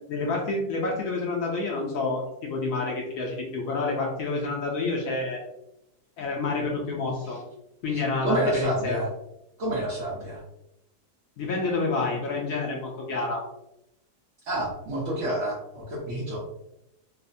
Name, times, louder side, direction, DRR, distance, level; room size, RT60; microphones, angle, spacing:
voice 1, 0.0-5.4 6.2-7.4 7.8-9.0 11.4-13.4, left 3 dB, 80° left, -2 dB, 0.7 m, -28 dB
voice 2, 7.9-9.1 9.6-10.4 14.4-16.4, right 1 dB, 55° right, -8 dB, 0.9 m, -29 dB
3.1 x 2.1 x 2.5 m, 0.84 s
omnidirectional pair, 2.0 m